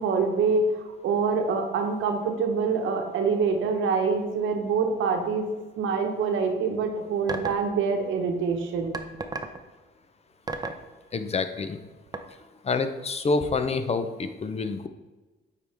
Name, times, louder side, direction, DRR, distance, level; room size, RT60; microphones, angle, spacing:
voice 1, 0.0-5.4 5.8-8.9, right 5 dB, 80° right, 4 dB, 1.0 m, -25 dB
sound 1, 7.3-7.7 8.9-9.6 10.5-10.8 12.1-12.2, right 3 dB, 20° right, 0.6 m, -31 dB
voice 2, 11.1-11.8 12.6-14.9, left 3 dB, 30° left, 9 dB, 0.6 m, -27 dB
8.4 x 4.7 x 3.4 m, 1.2 s
cardioid pair, 90°, 20 cm